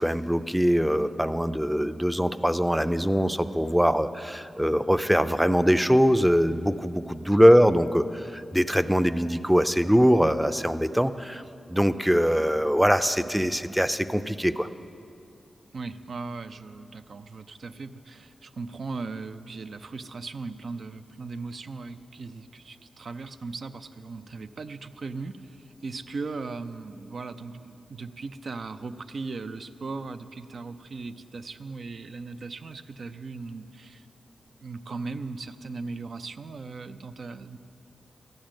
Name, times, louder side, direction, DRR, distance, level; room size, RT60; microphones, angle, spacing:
voice 1, 0.0-11.4 11.7-14.7, equal, 5° right, 12 dB, 0.5 m, -22 dB
voice 2, 7.3-7.6 15.7-34.1 34.6-37.6, right 4 dB, 70° right, 10 dB, 0.5 m, -38 dB
13.0 x 6.3 x 8.9 m, 2.6 s
cardioid pair, 65°, 0 cm